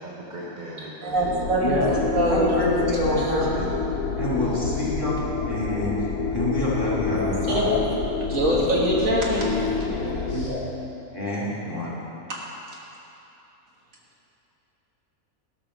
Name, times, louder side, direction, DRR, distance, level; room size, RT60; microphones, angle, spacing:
voice 1, 0.0-1.3 4.3-4.9 9.9-10.5, right 1 dB, 35° right, -5 dB, 1.1 m, -39 dB
voice 2, 0.8-2.6 3.2-3.3 7.2-7.7 8.3-9.8 12.3-12.4, right 1 dB, 65° right, -3 dB, 1.8 m, -24 dB
sound 1, 1.1-10.5, left 5 dB, 80° left, 1.2 m, -28 dB
voice 3, 1.6-1.9 2.3-3.7 4.2-5.2 5.5-7.8 8.3-8.6 9.3-9.6 10.3-10.8 11.1-11.9, left 1 dB, 15° left, -7 dB, 2.0 m, -27 dB
12.5 x 5.8 x 6.0 m, 2.9 s
omnidirectional pair, 1.5 m